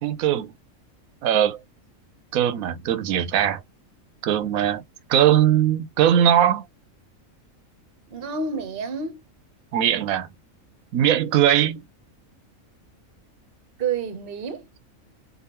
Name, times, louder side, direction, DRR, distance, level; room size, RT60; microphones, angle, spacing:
voice 1, 0.0-0.5 1.2-1.6 2.3-3.6 4.2-4.8 5.1-6.7 9.7-10.3 10.9-11.8, right 10 dB, 85° right, 1.1 m, -20 dB
voice 2, 8.1-9.2 13.8-14.7, right 5 dB, 45° right, 1.0 m, -29 dB
4.3 x 3.5 x 2.9 m
omnidirectional pair, 1.4 m